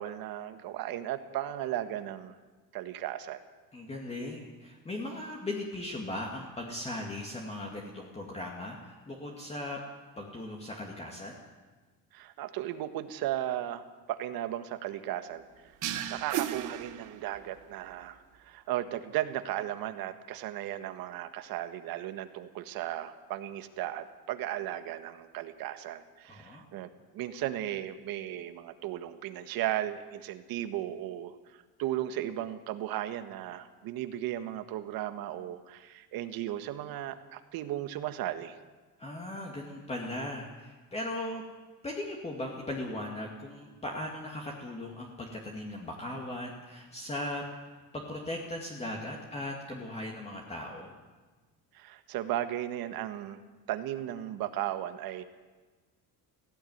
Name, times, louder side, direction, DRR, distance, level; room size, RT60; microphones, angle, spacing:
voice 1, 0.0-2.3 2.7-3.4 12.1-13.8 14.1-15.4 16.1-38.6 51.7-53.4 53.7-55.2, right 12 dB, 75° right, 9 dB, 1.7 m, -36 dB
voice 2, 3.7-9.8 10.2-11.4 26.3-26.6 39.0-41.5 41.8-47.5 47.9-50.9, left 1 dB, 15° left, -1 dB, 2.2 m, -38 dB
sound 1, 15.8-17.6, right 11 dB, 55° right, 1.2 m, -35 dB
17.0 x 16.5 x 9.4 m, 1.3 s
cardioid pair, 145°, 36 cm